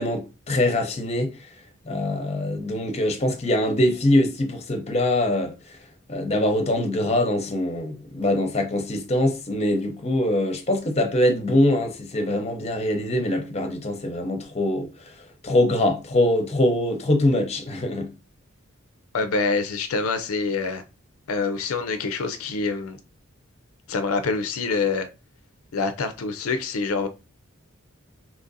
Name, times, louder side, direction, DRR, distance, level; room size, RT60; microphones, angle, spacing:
voice 1, 0.0-1.3 1.9-5.5 6.1-14.9 15.4-18.1, left 1 dB, 30° left, 0.7 m, -23 dB
voice 2, 19.1-20.8 21.3-23.0 23.9-25.1 25.7-27.1, left 4 dB, 85° left, 0.5 m, -26 dB
2.9 x 2.5 x 3.9 m
head